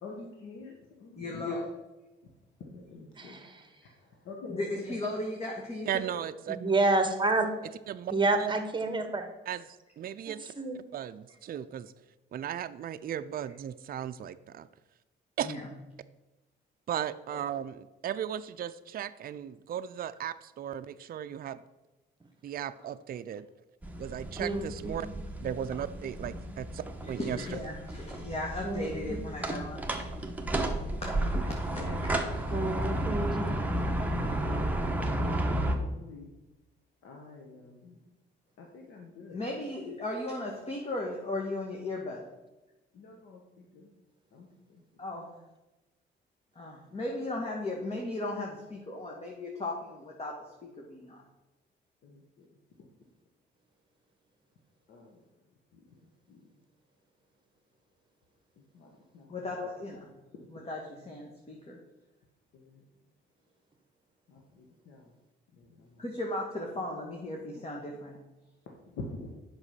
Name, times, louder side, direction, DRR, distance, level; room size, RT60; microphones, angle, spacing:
voice 1, 0.0-0.7 1.0-1.7 2.6-3.4 4.2-4.8 5.2-5.3 17.3-17.4 30.9-31.2 31.7-33.2 34.2-36.3 37.0-38.0 38.6-39.4 42.9-43.9 44.3-44.8 52.0-52.5 54.9-55.2 56.3-56.4 58.7-59.7 62.5-62.7 64.3-65.0 65.6-65.8 69.0-69.3, left 3 dB, 80° left, 0 dB, 1.5 m, -45 dB
voice 2, 1.2-1.6 4.5-6.0 15.4-15.7 27.1-29.8 30.5-30.6 31.0-32.4 39.3-42.3 45.0-45.3 46.5-50.4 50.9-51.2 59.3-60.0 60.5-61.8 66.0-68.2, left 2 dB, 30° left, 0 dB, 1.6 m, -36 dB
voice 3, 3.2-3.6 6.5-7.5 8.1-9.3 10.6-10.8 24.4-25.0 28.6-29.2 32.5-33.5, right 2 dB, 25° right, 7 dB, 1.4 m, -29 dB
voice 4, 5.9-6.6 7.9-8.1 8.4-8.5 9.5-9.6 10.0-10.5 10.9-11.9 12.3-14.7 15.4-15.6 16.9-21.6 22.4-23.5 24.0-25.1 25.4-27.5, right 10 dB, 50° right, 10 dB, 0.4 m, -36 dB
sound 1, 23.8-35.8, right 1 dB, 10° right, 1.2 m, -32 dB
8.0 x 6.1 x 5.7 m, 1.1 s
cardioid pair, 90°, 20 cm